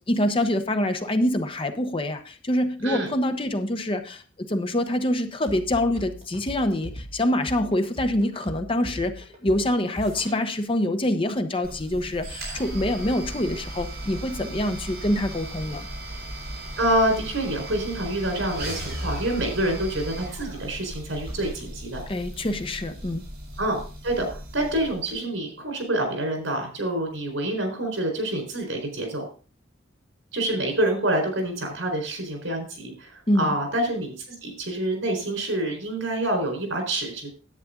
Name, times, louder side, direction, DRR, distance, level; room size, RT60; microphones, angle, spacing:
voice 1, 0.1-15.9 22.1-23.2 33.3-33.5, left 1 dB, 30° left, 7 dB, 0.9 m, -25 dB
sound 1, 5.5-10.4, equal, 35° right, 3.4 m, -39 dB
sound 2, 11.6-25.1, right 1 dB, 55° right, 6.0 m, -36 dB
voice 2, 16.8-22.0 23.6-29.2 30.3-34.1 34.4-37.3, right 1 dB, 85° right, 3 dB, 4.3 m, -27 dB
10.5 x 8.5 x 3.7 m, 0.36 s
head